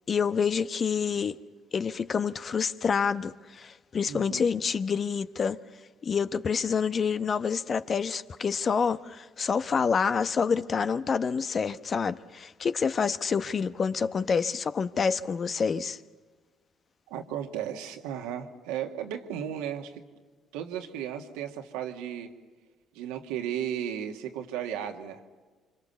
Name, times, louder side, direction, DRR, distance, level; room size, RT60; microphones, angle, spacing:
voice 1, 0.1-1.4 1.7-5.6 6.0-16.0, left 6 dB, 45° left, 1.0 m, -27 dB
voice 2, 4.1-4.5 17.1-20.0 20.5-22.3 22.9-25.2, right 9 dB, 80° right, 2.0 m, -35 dB
28.5 x 25.5 x 7.0 m
hypercardioid pair, 55°, 0 cm